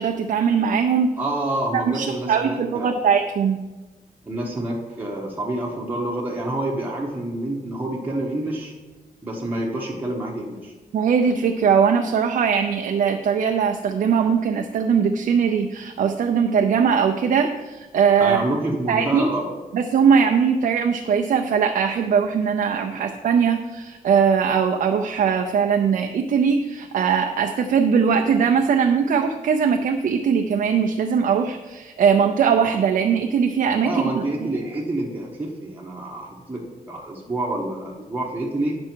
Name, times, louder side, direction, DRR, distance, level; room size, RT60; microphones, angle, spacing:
voice 1, 0.0-1.1 1.7-3.6 10.9-18.4 18.9-19.2 19.7-34.2, right 6 dB, 60° right, 4 dB, 0.5 m, -20 dB
voice 2, 1.2-2.9 4.3-8.7 9.2-10.7 18.2-19.5 22.9-23.0 33.8-38.7, right 1 dB, 10° right, -4 dB, 1.1 m, -28 dB
9.6 x 6.1 x 4.5 m, 1.2 s
wide cardioid pair, 165°, 15 cm